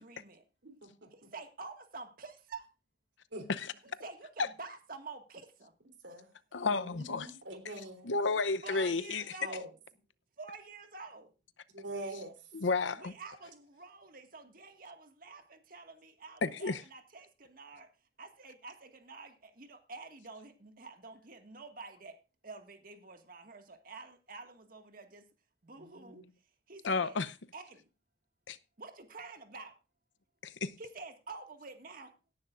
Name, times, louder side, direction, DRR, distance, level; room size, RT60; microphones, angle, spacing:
voice 1, 0.0-0.4 1.1-2.7 3.8-5.7 6.1-6.2 8.6-9.7 10.4-11.3 13.0-17.9 18.2-22.2 22.4-25.3 25.6-26.2 26.7-27.2 27.5-27.8 28.8-29.7 30.8-32.1, right 4 dB, 50° right, 1.8 m, -48 dB
voice 2, 0.6-1.1 3.3-3.5 6.0-6.3 6.5-8.1 9.4-9.7 11.7-12.3 25.8-26.3, right 1 dB, 80° right, 3.4 m, -44 dB
voice 3, 6.5-7.3 8.0-9.2 12.5-13.1 16.4-16.8 26.8-27.3 28.5-28.6 30.4-30.7, left 4 dB, 90° left, 0.7 m, -31 dB
17.5 x 10.5 x 2.5 m
head